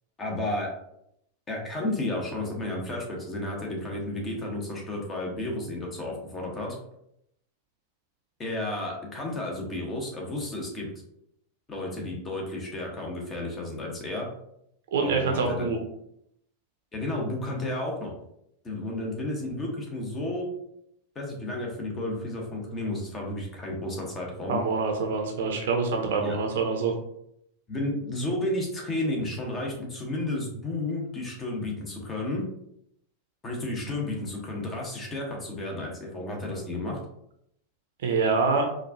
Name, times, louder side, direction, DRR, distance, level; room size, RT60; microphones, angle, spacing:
voice 1, 0.2-0.7 1.5-6.8 8.4-10.9 11.7-14.3 15.0-15.7 16.9-18.1 18.6-20.5 21.1-24.6 26.2-26.3 27.7-32.4 33.4-37.0, left 1 dB, 20° left, -1 dB, 1.0 m, -32 dB
voice 2, 14.9-15.8 24.5-26.9 38.0-38.6, right 4 dB, 55° right, 2 dB, 0.6 m, -25 dB
4.5 x 2.3 x 2.6 m, 0.76 s
figure-of-eight pair, 90°, 0 cm